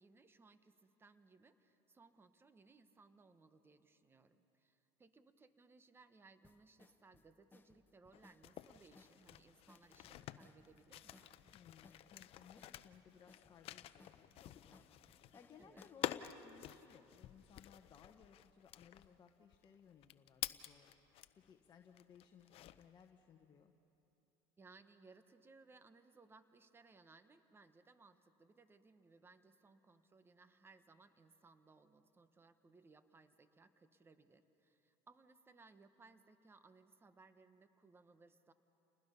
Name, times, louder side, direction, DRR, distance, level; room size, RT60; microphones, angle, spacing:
voice 1, 0.0-11.3 15.6-15.8 24.6-38.5, right 3 dB, 20° right, 11 dB, 1.1 m, -65 dB
sound 1, 6.4-16.0, left 3 dB, 15° left, 1.1 m, -66 dB
sound 2, 8.1-21.5 21.9-23.0, left 13 dB, 50° left, 0.7 m, -49 dB
voice 2, 11.5-23.7, left 7 dB, 35° left, 3 dB, 1.3 m, -63 dB
29.5 x 20.0 x 5.6 m, 2.9 s
supercardioid pair, 105°, 13 cm